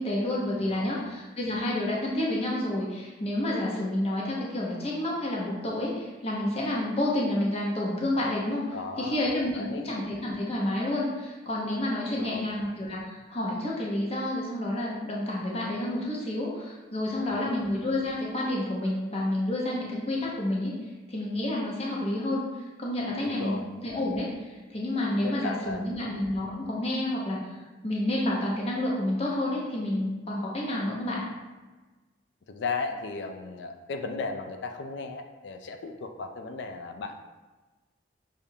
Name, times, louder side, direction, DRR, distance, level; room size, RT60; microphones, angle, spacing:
voice 1, 0.0-20.7 21.1-22.4 22.8-27.5 27.8-31.2, left 1 dB, 35° left, -4 dB, 0.7 m, -29 dB
voice 2, 0.5-1.1 8.7-9.3 9.5-9.9 12.1-12.5 17.1-17.6 23.1-23.7 25.2-25.9 26.4-26.7 32.5-37.1, left 4 dB, 65° left, 6 dB, 0.4 m, -36 dB
6.7 x 2.5 x 2.7 m, 1.2 s
head